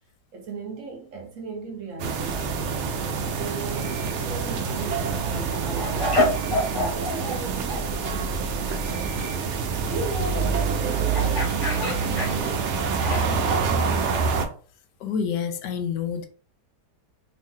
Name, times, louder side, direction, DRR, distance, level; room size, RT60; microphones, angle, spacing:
voice 1, 0.3-2.9 3.4-9.5 9.9-11.4 11.9-14.0, right 3 dB, 60° right, 1.0 m, -37 dB
sound 1, 2.0-14.5, right 5 dB, 85° right, 0.6 m, -26 dB
sound 2, 4.1-4.4 4.8-7.4 7.7-7.8 11.1-13.5, left 2 dB, 15° left, 0.8 m, -28 dB
voice 2, 15.0-16.3, left 7 dB, 90° left, 1.2 m, -28 dB
2.8 x 2.6 x 3.6 m
omnidirectional pair, 1.8 m